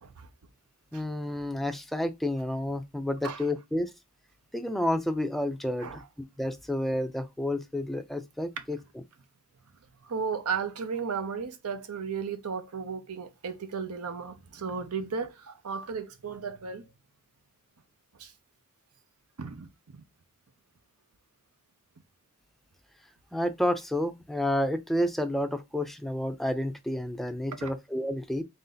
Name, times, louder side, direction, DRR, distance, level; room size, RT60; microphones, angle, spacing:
voice 1, 0.9-3.9 4.5-6.0 6.4-8.8 23.3-28.4, left 1 dB, ahead, 0.4 m, -30 dB
voice 2, 10.0-16.9 18.2-18.3 19.4-20.0 27.6-27.7, right 5 dB, 80° right, 0.7 m, -35 dB
3.7 x 2.7 x 3.8 m
head